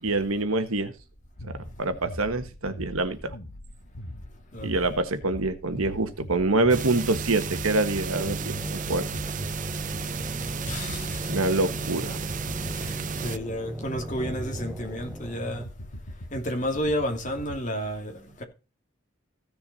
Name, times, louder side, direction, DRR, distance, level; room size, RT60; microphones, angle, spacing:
voice 1, 0.0-0.9 1.4-3.3 4.6-9.1 11.3-12.2, right 2 dB, 80° right, 1.4 m, -26 dB
sound 1, 1.4-17.6, left 1 dB, 70° left, 1.5 m, -42 dB
voice 2, 4.5-4.9 10.7-11.3 12.7-15.7 16.3-18.4, equal, 35° left, 2.5 m, -31 dB
sound 2, 6.7-13.4, right 5 dB, 35° right, 0.6 m, -33 dB
sound 3, 8.1-15.6, equal, 5° right, 0.8 m, -39 dB
15.5 x 7.0 x 4.2 m
head